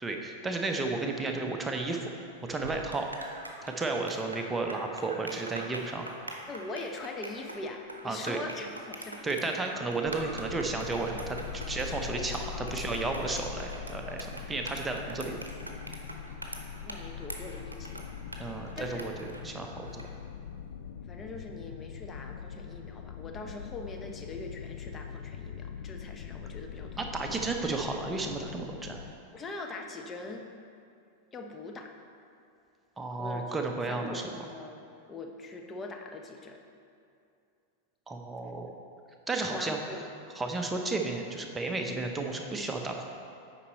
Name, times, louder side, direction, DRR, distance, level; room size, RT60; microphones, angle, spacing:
voice 1, 0.0-2.1 2.4-3.1 3.6-6.1 8.0-8.4 9.2-11.4 11.7-15.4 18.4-19.1 19.4-20.0 27.0-29.0 33.0-34.2 38.1-38.7 39.3-39.8 40.3-43.1, right 3 dB, 10° right, 2 dB, 0.8 m, -33 dB
sound 1, 2.4-20.1, right 1 dB, 80° right, 0.7 m, -44 dB
voice 2, 6.5-9.3 12.5-12.9 13.2-13.3 16.8-18.1 18.8-19.0 21.1-27.4 29.3-30.5 31.3-31.9 33.2-33.6 33.9-34.8 35.1-36.6 39.5-40.1, left 2 dB, 20° left, 3 dB, 0.7 m, -42 dB
sound 2, 10.0-29.1, left 7 dB, 65° left, 0.3 m, -42 dB
8.4 x 5.3 x 4.1 m, 2.5 s
figure-of-eight pair, 90°, 0 cm